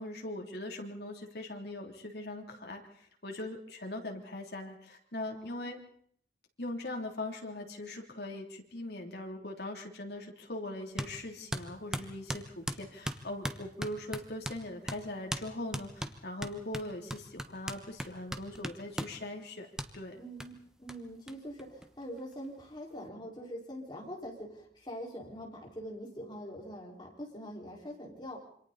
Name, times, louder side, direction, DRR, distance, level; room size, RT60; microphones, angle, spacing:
voice 1, 0.0-5.8 6.6-19.7 19.9-20.2, left 1 dB, 65° left, 2 dB, 3.2 m, -41 dB
voice 2, 5.3-5.8 20.2-28.4, equal, 25° left, -2 dB, 4.8 m, -44 dB
sound 1, 11.0-11.1 11.5-14.6 14.9-15.0 15.3-15.5 15.7-19.2 19.8-19.9 20.4-20.5 20.9-21.0 21.3-21.4 21.6-22.3, equal, 5° right, 1.1 m, -38 dB
27.0 x 25.0 x 4.2 m, 0.63 s
head